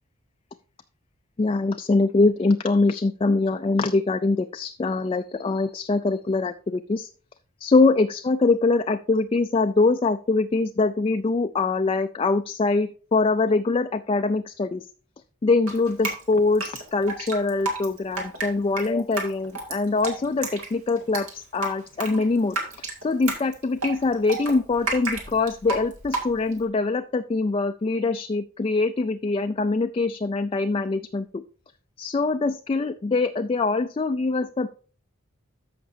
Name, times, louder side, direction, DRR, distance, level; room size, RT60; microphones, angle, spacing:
voice 1, 1.4-7.1 7.6-14.9 15.4-22.6 23.0-31.4 32.0-34.7, left 3 dB, 25° left, 8 dB, 0.3 m, -23 dB
Drip, 15.7-26.6, right 3 dB, 80° right, 2.2 m, -32 dB
14.0 x 5.9 x 2.7 m, 0.39 s
head